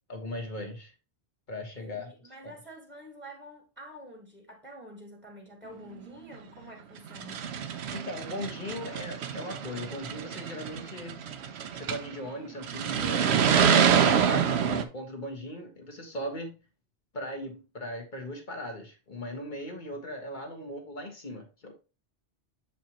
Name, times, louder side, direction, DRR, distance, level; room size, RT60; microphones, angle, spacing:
voice 1, 0.1-0.9 1.5-2.1 2.4-2.6 7.9-11.2 11.7-13.3 13.6-16.6 17.1-21.7, left 1 dB, 45° left, 1.5 m, -38 dB
voice 2, 1.8-7.4, equal, ahead, 1.4 m, -48 dB
sound 1, 6.3-6.4 7.1-12.1 12.6-14.8, right 7 dB, 70° right, 0.9 m, -26 dB
7.4 x 5.0 x 2.9 m
omnidirectional pair, 1.2 m